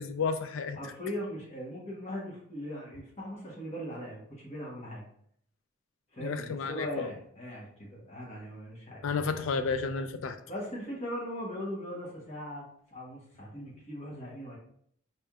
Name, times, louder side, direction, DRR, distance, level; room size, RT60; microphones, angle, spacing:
voice 1, 0.0-0.9 6.2-7.1 9.0-10.4, left 5 dB, 70° left, 10 dB, 0.4 m, -32 dB
voice 2, 0.8-5.0 6.1-9.0 10.5-14.6, equal, 35° left, -4 dB, 1.1 m, -39 dB
4.3 x 3.3 x 2.3 m, 0.66 s
head